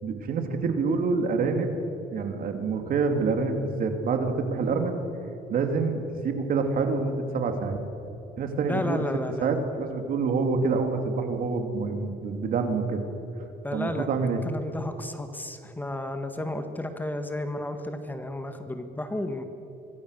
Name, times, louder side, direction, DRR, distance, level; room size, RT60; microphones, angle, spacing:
voice 1, 0.0-1.8 2.1-4.9 5.5-7.8 8.4-9.0 9.4-13.0 13.7-14.4, right 4 dB, 55° right, 5 dB, 2.9 m, -27 dB
voice 2, 8.6-9.5 13.6-14.1 14.4-19.4, left 1 dB, 10° left, 7 dB, 1.7 m, -32 dB
25.5 x 22.0 x 6.7 m, 3.0 s
cardioid pair, 110°, 17 cm